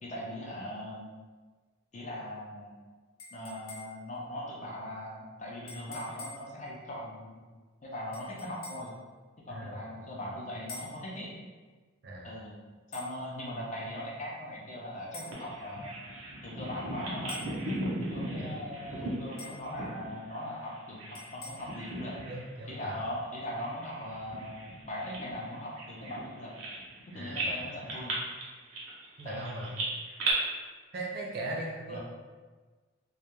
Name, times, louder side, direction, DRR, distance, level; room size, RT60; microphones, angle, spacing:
voice 1, 0.0-1.1 1.9-2.7 3.3-7.5 7.8-8.9 9.4-11.3 12.2-12.5 12.9-15.9 16.4-17.4 18.0-22.2 22.7-26.5 27.1-28.1 29.2-29.7 31.9-32.0, left 1 dB, 35° left, -3 dB, 0.4 m, -40 dB
sound 1, 3.2-4.1 5.7-6.5 8.1-9.0 10.7-11.0 12.9-13.1 15.1-15.4 17.3-17.6 19.4-19.7 21.1-21.5, left 3 dB, 80° left, 0.7 m, -46 dB
voice 2, 9.5-9.8 12.0-12.3 18.3-18.5 22.3-23.0 27.1-27.7 29.2-29.7 30.9-32.0, right 2 dB, 45° right, -2 dB, 0.4 m, -39 dB
Bird vocalization bird call bird song, 15.3-21.3 21.6-22.5 22.8-23.0 23.6-27.0 27.3-30.3, right 2 dB, 85° right, 0.7 m, -37 dB
2.2 x 2.1 x 3.0 m, 1.4 s
head